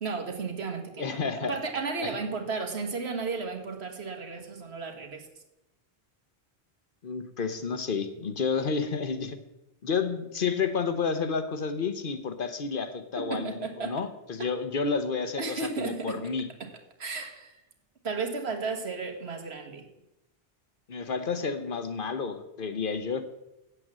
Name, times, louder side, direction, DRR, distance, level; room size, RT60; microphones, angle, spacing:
voice 1, 0.0-5.3 13.2-14.1 15.4-16.3 16.6-16.7 17.0-17.6 18.0-19.9, right 4 dB, 80° right, 4 dB, 1.8 m, -34 dB
voice 2, 1.0-1.6 2.0-2.1 7.0-9.4 9.8-16.5 20.9-23.2, left 5 dB, 55° left, 9 dB, 1.1 m, -30 dB
8.6 x 8.0 x 7.4 m, 0.93 s
omnidirectional pair, 1.1 m